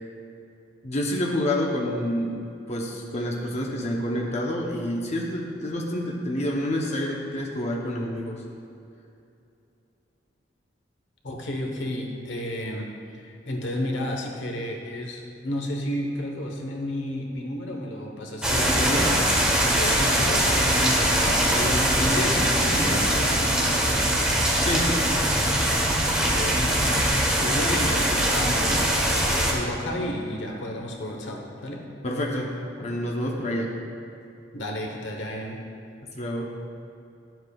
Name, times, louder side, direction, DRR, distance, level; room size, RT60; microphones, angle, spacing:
voice 1, 0.8-2.4 2.7-8.4 24.6-25.0 32.0-33.7 36.2-36.5, left 1 dB, 35° left, -1 dB, 0.8 m, -28 dB
voice 2, 11.2-12.9 13.1-23.6 26.2-31.8 34.5-35.6, left 1 dB, 85° left, 1 dB, 1.1 m, -31 dB
sound 1, 18.4-29.5, right 1 dB, 5° right, 1.0 m, -22 dB
11.5 x 7.7 x 2.3 m, 2.7 s
head